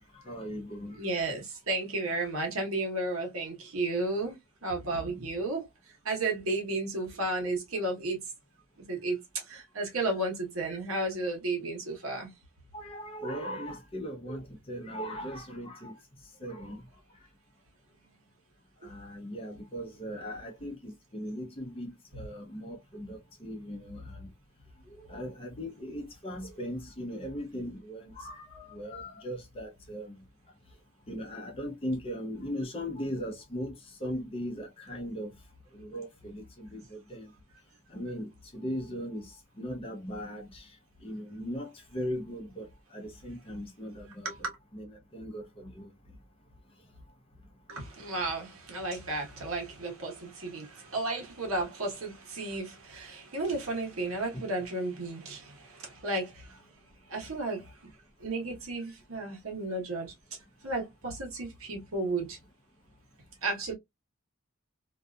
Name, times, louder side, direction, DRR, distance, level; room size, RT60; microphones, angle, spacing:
voice 1, 0.0-1.0 12.7-16.0 16.4-16.8 18.8-24.3 25.1-30.2 31.1-35.3 35.7-37.3 37.9-40.7 41.0-44.3 44.7-44.9 45.1-45.9, equal, 25° left, 0.7 m, -38 dB
voice 2, 1.0-8.2 8.9-12.3 39.9-40.3 44.2-44.6 47.7-56.6 57.1-57.8 58.2-60.1 60.6-62.4 63.4-63.7, right 2 dB, 80° right, 1.1 m, -33 dB
2.6 x 2.4 x 2.2 m
head